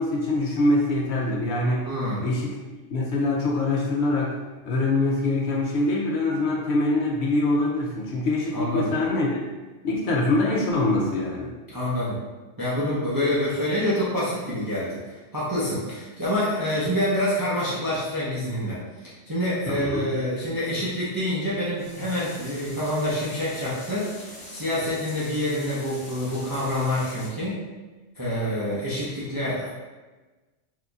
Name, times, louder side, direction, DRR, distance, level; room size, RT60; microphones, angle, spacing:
voice 1, 0.0-1.9 2.2-4.4 4.6-9.4 9.8-11.5 19.7-20.1, left 2 dB, 65° left, -2 dB, 0.8 m, -24 dB
voice 2, 1.8-2.2 8.5-8.9 11.7-12.2 12.6-24.2 24.5-27.5 28.2-29.7, left 1 dB, 25° right, -9 dB, 0.5 m, -27 dB
sound 1, 21.8-27.3, left 1 dB, 40° left, 1.1 m, -43 dB
3.8 x 2.8 x 2.3 m, 1.2 s
omnidirectional pair, 1.3 m